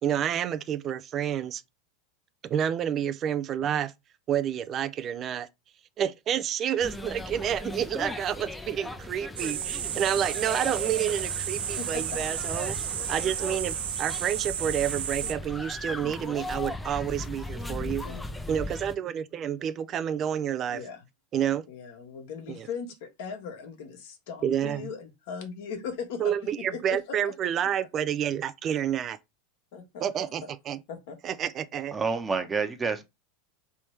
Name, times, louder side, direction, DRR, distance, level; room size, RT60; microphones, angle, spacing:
voice 1, 0.0-1.6 2.4-3.9 4.3-5.5 6.0-12.7 13.1-18.0 18.5-20.8 21.3-21.6 22.5-22.7 24.4-24.9 26.2-29.2 30.0-30.8 31.2-31.9, right 9 dB, 40° right, 0.4 m, -29 dB
sound 1, 6.8-18.9, left 2 dB, 10° left, 0.6 m, -38 dB
sound 2, 9.4-15.3, right 10 dB, 75° right, 0.6 m, -33 dB
voice 2, 11.8-12.2 15.2-15.3 17.6-18.2 20.7-21.0 21.7-27.3 28.7-28.8 29.7-30.3 30.9-31.2, left 6 dB, 65° left, 1.4 m, -39 dB
voice 3, 31.9-33.0, right 4 dB, 20° right, 1.0 m, -28 dB
3.4 x 3.1 x 4.5 m
hypercardioid pair, 95°, 0 cm